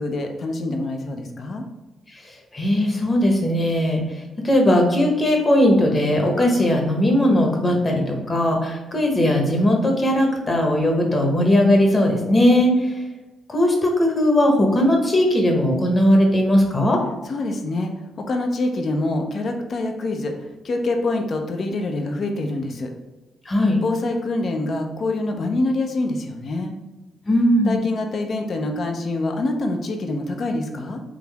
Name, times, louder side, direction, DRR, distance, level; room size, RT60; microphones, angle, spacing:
voice 1, 0.0-1.6 17.2-17.9 18.3-20.3 20.6-22.9 23.8-26.7 27.7-31.0, left 2 dB, 55° left, 4 dB, 0.6 m, -25 dB
voice 2, 2.5-4.0 4.4-12.7 13.5-17.0 23.5-23.8 27.3-27.8, left 1 dB, 30° left, 1 dB, 1.1 m, -18 dB
3.8 x 2.9 x 3.4 m, 1.1 s
cardioid pair, 80°, 0 cm